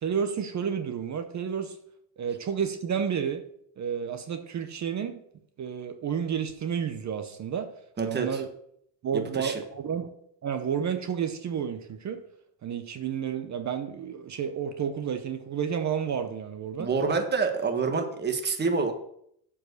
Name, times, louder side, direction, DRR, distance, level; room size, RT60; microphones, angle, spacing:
voice 1, 0.0-1.8 2.2-3.4 3.8-5.2 5.6-7.7 8.0-8.5 9.0-10.1 10.4-12.2 12.6-16.9, right 7 dB, 35° right, 8 dB, 0.8 m, -31 dB
voice 2, 8.0-8.4 9.1-9.6 16.8-18.9, right 4 dB, 20° right, 5 dB, 1.3 m, -27 dB
7.4 x 4.9 x 6.5 m, 0.70 s
supercardioid pair, 100°, 47 cm